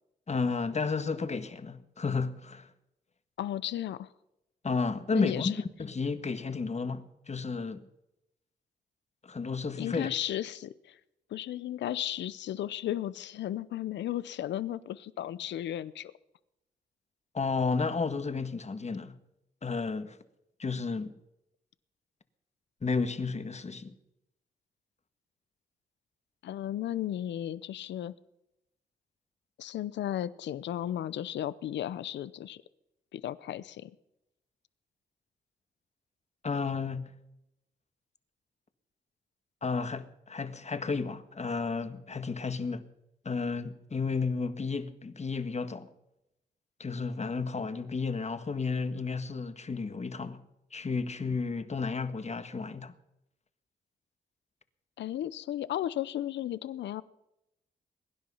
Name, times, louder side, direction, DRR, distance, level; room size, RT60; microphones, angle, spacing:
voice 1, 0.3-2.7 4.6-5.5 5.8-7.8 9.2-10.1 17.3-19.2 19.6-20.2 20.6-21.1 22.8-23.9 36.4-37.1 39.6-42.8 43.2-45.9 46.8-50.4 50.7-52.9, left 4 dB, 40° left, 1.6 m, -32 dB
voice 2, 3.4-4.1 5.1-5.6 9.8-10.9 11.3-16.1 26.4-28.1 29.6-32.6 33.1-33.9 55.0-57.0, left 12 dB, 80° left, 0.7 m, -34 dB
22.5 x 10.5 x 5.6 m
supercardioid pair, 55°, 18 cm